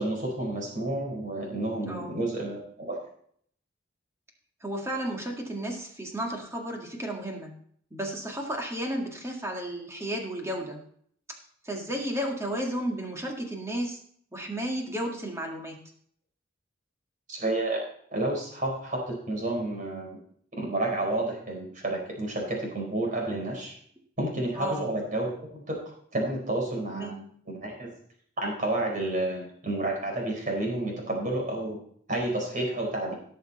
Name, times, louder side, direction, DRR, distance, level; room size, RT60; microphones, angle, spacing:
voice 1, 0.0-3.0 17.3-17.8 18.1-20.2 20.6-23.7 24.2-25.8 26.1-27.1 27.5-27.9 28.4-31.8 32.1-33.1, right 1 dB, 40° right, -1 dB, 4.3 m, -30 dB
voice 2, 1.8-2.2 4.6-7.5 7.9-10.8 11.6-14.0 14.3-15.8 24.6-24.9 26.9-27.4, right 1 dB, 15° right, 1 dB, 2.0 m, -33 dB
17.5 x 6.5 x 4.1 m, 0.62 s
head